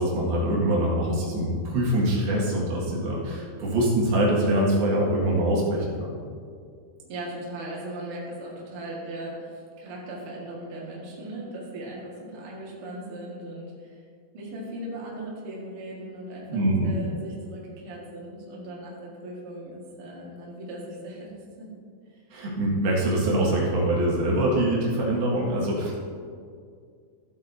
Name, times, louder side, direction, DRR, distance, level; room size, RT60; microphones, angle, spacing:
voice 1, 0.0-6.2 16.5-17.0 22.3-26.0, right 1 dB, 75° right, -5 dB, 3.7 m, -24 dB
voice 2, 7.0-14.0 14.3-21.3 21.6-21.7 22.1-22.2, right 1 dB, 45° right, -5 dB, 2.3 m, -38 dB
15.0 x 7.8 x 2.8 m, 2.2 s
omnidirectional pair, 4.5 m